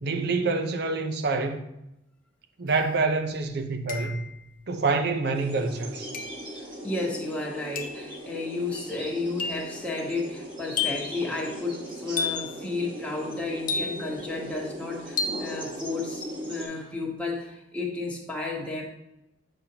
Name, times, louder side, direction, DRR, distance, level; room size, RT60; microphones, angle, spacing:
voice 1, 0.0-1.6 2.6-4.2 4.7-6.1, right 3 dB, 60° right, 0.6 m, -26 dB
sound 1, 2.7-2.8 3.9-4.4 6.1-6.5 7.8-8.1 9.4-9.7 10.8-11.2 12.2-12.6 13.7-14.2 15.2-15.5, left 5 dB, 45° left, 0.6 m, -31 dB
sound 2, 5.3-16.7, equal, 25° right, 1.3 m, -39 dB
voice 2, 6.8-18.8, left 3 dB, 5° left, 1.1 m, -32 dB
8.6 x 5.4 x 2.8 m
head